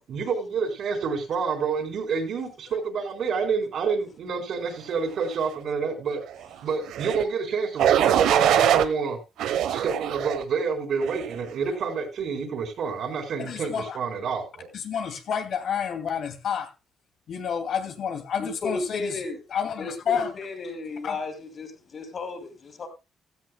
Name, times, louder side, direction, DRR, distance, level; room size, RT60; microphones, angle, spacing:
voice 1, 0.0-6.2 6.6-9.2 9.7-14.7, right 5 dB, 65° right, 4.0 m, -28 dB
sound 1, 6.9-7.2 7.8-8.9 9.4-10.4 11.0-11.4, right 10 dB, 85° right, 1.0 m, -22 dB
voice 2, 13.4-14.0 14.7-16.7 17.3-19.2 19.5-20.3 21.0-21.2, left 7 dB, 65° left, 2.4 m, -29 dB
voice 3, 18.4-19.4 19.8-22.9, left 3 dB, 45° left, 6.4 m, -34 dB
15.5 x 14.0 x 2.3 m
cardioid pair, 90°, 0 cm